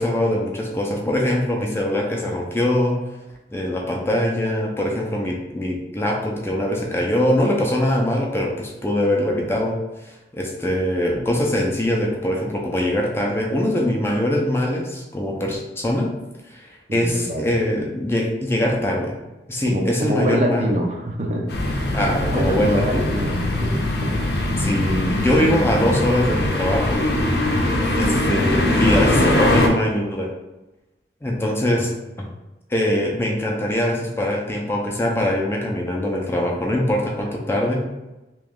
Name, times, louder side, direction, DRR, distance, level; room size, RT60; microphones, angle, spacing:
voice 1, 0.0-2.9 3.5-9.7 10.0-16.1 16.5-16.7 16.9-19.1 19.5-20.7 21.9-23.2 24.6-27.0 27.9-30.3 31.2-31.9 32.2-32.3 32.7-37.8, left 1 dB, 15° left, -1 dB, 0.5 m, -22 dB
voice 2, 16.9-17.5 19.7-21.9 22.2-23.3 23.6-24.2, right 1 dB, 40° right, 1 dB, 0.5 m, -26 dB
sound 1, 21.5-29.7, left 1 dB, 65° left, 0.6 m, -21 dB
3.0 x 2.9 x 3.6 m, 1.0 s
head